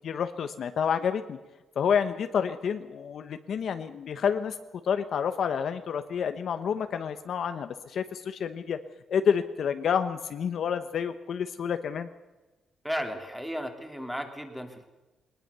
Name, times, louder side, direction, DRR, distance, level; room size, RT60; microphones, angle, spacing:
voice 1, 0.0-1.4 1.8-4.6 4.8-8.8 9.1-12.1, left 7 dB, 50° left, 9 dB, 1.1 m, -29 dB
voice 2, 12.8-14.8, equal, ahead, 5 dB, 2.6 m, -34 dB
22.0 x 19.5 x 6.8 m, 1.1 s
cardioid pair, 165°, 0 cm